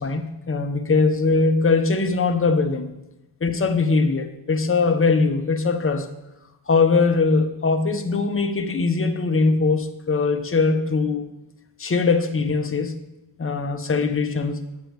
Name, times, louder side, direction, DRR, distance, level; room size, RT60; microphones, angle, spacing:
voice 1, 0.0-2.9 3.4-6.1 6.7-11.3 11.8-13.0 13.4-14.6, left 4 dB, 30° left, 0.7 m, -21 dB
9.2 x 6.9 x 4.5 m
wide cardioid pair, 165°, 44 cm